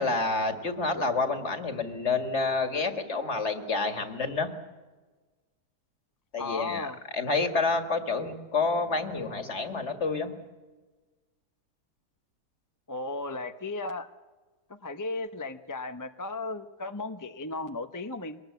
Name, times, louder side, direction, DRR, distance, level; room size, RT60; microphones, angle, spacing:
voice 1, 0.0-4.5 6.3-6.9 7.1-10.3, left 3 dB, 45° left, 6 dB, 2.2 m, -28 dB
voice 2, 6.4-7.0 12.9-14.1 14.8-18.4, left 3 dB, 20° left, 8 dB, 0.6 m, -35 dB
24.0 x 19.5 x 8.3 m, 1.3 s
omnidirectional pair, 1.7 m